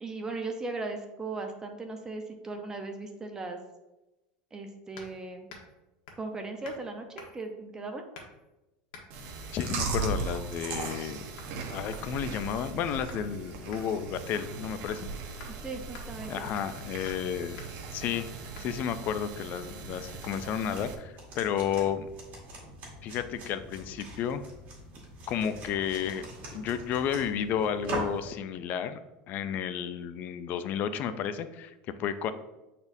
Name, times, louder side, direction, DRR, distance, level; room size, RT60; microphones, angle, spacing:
voice 1, 0.0-3.6 4.5-5.5 6.2-8.0 15.6-16.5, right 3 dB, 15° right, 5 dB, 0.7 m, -37 dB
sound 1, 5.0-5.2 5.5-5.7 6.1-6.3 6.6-6.8 7.2-7.5 8.1-8.5 8.9-9.1 9.6-9.8 10.3-10.5 10.8-11.1 11.4-11.5 11.9-13.3 13.7-13.8 14.3-14.6 14.9-15.0 15.4-15.5 15.9-16.1 16.6-16.8 17.1-17.3 17.6-17.7 18.1-18.3 18.6-18.7, left 4 dB, 70° left, 1.3 m, -48 dB
Chewing mastication, 9.1-20.9, right 4 dB, 55° right, 1.0 m, -38 dB
voice 2, 9.5-11.3 11.7-15.1 16.3-17.6 17.9-18.3 18.6-22.1 23.0-24.4 25.3-26.3 26.5-29.0 29.3-32.3, left 8 dB, 45° left, 11 dB, 0.4 m, -32 dB
sound 2, 19.9-28.3, right 1 dB, 40° right, 2.1 m, -42 dB
8.5 x 4.2 x 2.7 m, 1.0 s
supercardioid pair, 135°, 4 cm